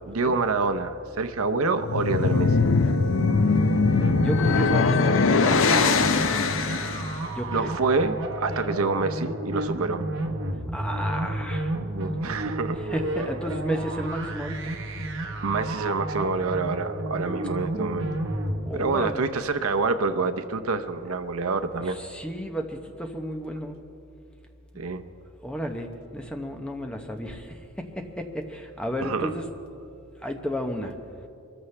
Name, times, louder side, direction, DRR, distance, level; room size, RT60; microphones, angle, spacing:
voice 1, 0.1-2.6 7.5-10.1 12.0-12.8 15.4-18.2 18.7-22.0 24.8-25.0 29.0-29.3, right 4 dB, 80° right, 9 dB, 0.7 m, -27 dB
sound 1, 1.7-7.1, left 4 dB, 65° left, 0.6 m, -21 dB
sound 2, 2.7-18.7, right 1 dB, 65° right, 1.3 m, -31 dB
voice 2, 4.2-6.1 7.3-7.7 10.7-11.7 12.8-14.7 18.7-19.3 21.8-23.8 25.2-29.5 30.2-31.0, equal, 5° left, 4 dB, 0.8 m, -33 dB
23.5 x 14.0 x 3.3 m, 2.6 s
head